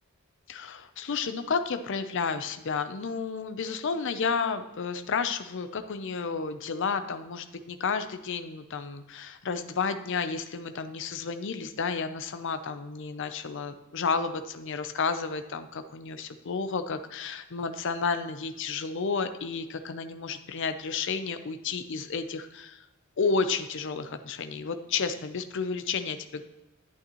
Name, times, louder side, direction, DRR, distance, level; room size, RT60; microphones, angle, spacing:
voice 1, 0.5-22.9 23.2-26.4, left 5 dB, 60° left, 9 dB, 0.6 m, -31 dB
10.5 x 8.7 x 3.0 m, 0.98 s
head